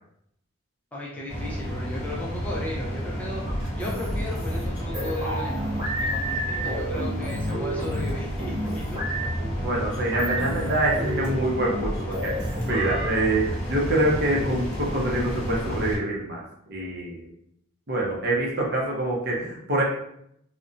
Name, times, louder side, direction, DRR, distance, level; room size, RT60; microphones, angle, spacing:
voice 1, 0.9-3.4 3.8-5.8 6.1-9.0, left 1 dB, 5° left, -5 dB, 0.3 m, -36 dB
sound 1, 1.3-16.0, equal, 35° left, 0.7 m, -32 dB
sound 2, 3.5-13.1, equal, 25° right, 1.0 m, -31 dB
voice 2, 9.6-17.3 17.9-19.8, right 1 dB, 50° right, -2 dB, 0.6 m, -26 dB
2.6 x 2.1 x 2.5 m, 0.74 s
head